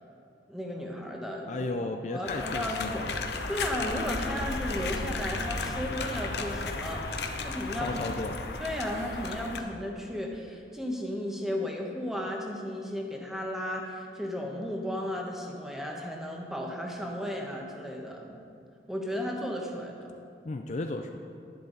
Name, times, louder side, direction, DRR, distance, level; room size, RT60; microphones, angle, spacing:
voice 1, 0.5-1.7 2.1-3.0 3.5-8.0 8.6-18.3 18.9-20.1, equal, ahead, 0 dB, 1.1 m, -34 dB
voice 2, 1.5-3.3 7.8-8.4 20.4-21.2, left 2 dB, 40° left, 5 dB, 0.4 m, -34 dB
sound 1, 2.3-9.6, left 3 dB, 75° left, 0.8 m, -34 dB
11.0 x 10.5 x 4.0 m, 2.4 s
head